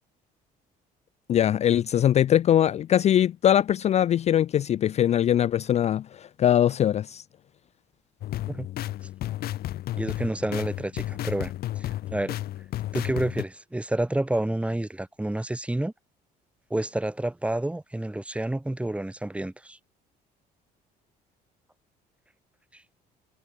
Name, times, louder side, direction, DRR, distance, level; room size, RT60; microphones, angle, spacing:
voice 1, 1.3-7.2, left 10 dB, 40° left, 0.4 m, -22 dB
sound 1, 8.2-13.4, left 14 dB, 65° left, 1.0 m, -32 dB
voice 2, 10.0-11.5 11.8-12.4 12.9-15.9 16.7-19.8 22.7-22.8, right 1 dB, 5° right, 1.2 m, -29 dB
cardioid pair, 110°, 17 cm